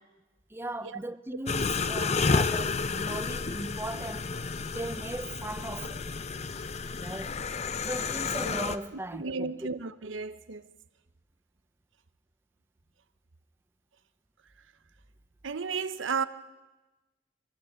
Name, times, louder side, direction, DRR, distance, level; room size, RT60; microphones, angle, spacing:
voice 1, 0.5-6.0 7.0-7.4 7.8-9.5, right 1 dB, 10° right, 0.6 m, -38 dB
sound 1, 1.5-8.8, left 4 dB, 35° left, 0.6 m, -31 dB
voice 2, 9.1-10.7 15.4-16.3, right 5 dB, 80° right, 0.8 m, -33 dB
23.0 x 15.5 x 8.9 m
head